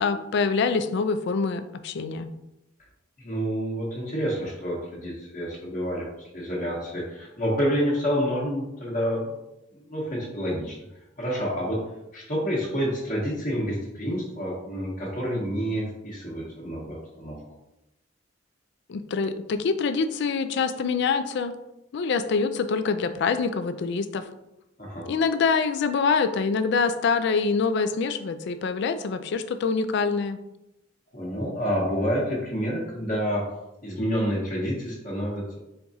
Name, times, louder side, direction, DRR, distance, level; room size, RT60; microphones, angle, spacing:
voice 1, 0.0-2.3 18.9-21.5 21.9-24.3 25.0-30.4, left 5 dB, 60° left, 10 dB, 0.4 m, -25 dB
voice 2, 3.2-9.3 9.7-10.8 11.2-11.8 12.1-17.4 24.8-25.1 31.1-33.4 33.8-35.6, equal, 45° left, -4 dB, 1.1 m, -28 dB
4.5 x 3.5 x 2.7 m, 0.90 s
head